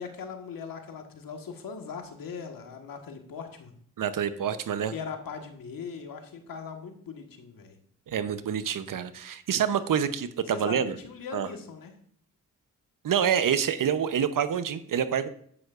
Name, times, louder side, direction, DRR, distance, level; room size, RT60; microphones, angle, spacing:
voice 1, 0.0-3.7 4.9-7.7 10.5-11.9, left 6 dB, 75° left, 4 dB, 1.5 m, -40 dB
voice 2, 4.0-4.9 8.1-11.0 11.3-11.5 13.0-15.3, right 8 dB, 65° right, 12 dB, 0.8 m, -27 dB
9.4 x 9.1 x 2.5 m, 0.62 s
supercardioid pair, 45°, 34 cm